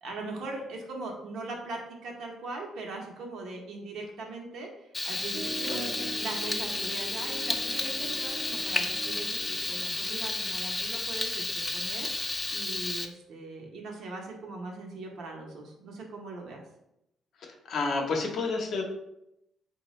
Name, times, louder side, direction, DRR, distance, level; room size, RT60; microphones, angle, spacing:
voice 1, 0.0-5.8 6.2-16.6, right 2 dB, 75° right, 1 dB, 0.8 m, -40 dB
Frying (food), 4.9-13.1, left 2 dB, 15° left, 0.3 m, -32 dB
Piano, 5.3-10.3, right 2 dB, 50° right, 0.4 m, -43 dB
voice 2, 5.7-6.1 17.4-18.8, left 3 dB, 65° left, 2 dB, 0.7 m, -31 dB
3.8 x 2.3 x 3.0 m, 0.83 s
cardioid pair, 90°, 0 cm